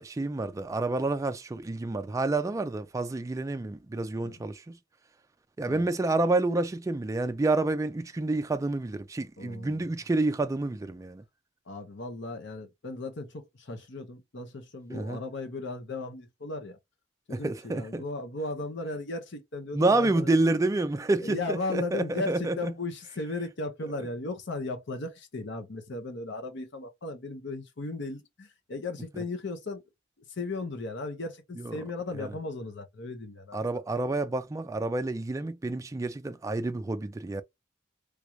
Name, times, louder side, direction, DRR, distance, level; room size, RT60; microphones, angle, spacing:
voice 1, 0.0-4.8 5.6-11.2 14.9-15.2 17.3-18.0 19.7-22.7 31.6-31.8 32.1-32.3 33.5-37.4, right 2 dB, 15° right, 0.3 m, -29 dB
voice 2, 9.4-9.8 11.7-16.8 17.3-20.4 21.2-29.8 30.3-33.8, left 2 dB, 65° left, 0.8 m, -36 dB
3.4 x 2.4 x 3.0 m
head